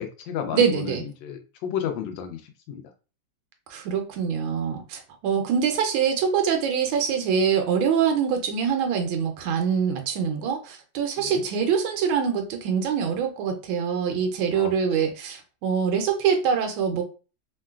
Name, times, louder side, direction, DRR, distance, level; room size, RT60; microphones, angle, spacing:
voice 1, 0.0-2.4 2.7-2.8 11.2-11.4 14.5-14.7, left 8 dB, 75° left, 1.3 m, -32 dB
voice 2, 0.5-1.0 3.7-17.0, right 7 dB, 85° right, 1.5 m, -24 dB
3.6 x 2.2 x 2.3 m
omnidirectional pair, 2.2 m